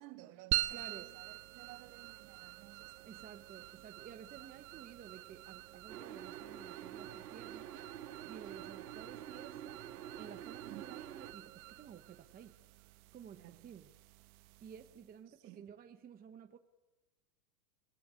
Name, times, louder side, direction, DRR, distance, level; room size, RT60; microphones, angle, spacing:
voice 1, 0.0-3.2 4.4-4.6 10.6-11.1 13.4-13.8 15.3-15.7, right 16 dB, 50° right, 1.7 m, -56 dB
sound 1, 0.5-15.2, right 18 dB, 65° right, 0.9 m, -45 dB
voice 2, 0.7-1.1 3.1-7.7 8.3-9.8 10.2-12.6 13.1-13.9 14.6-16.6, right 8 dB, 20° right, 0.8 m, -53 dB
sound 2, 5.9-11.3, right 10 dB, 85° right, 2.0 m, -48 dB
20.0 x 18.0 x 9.9 m
supercardioid pair, 125°, 45 cm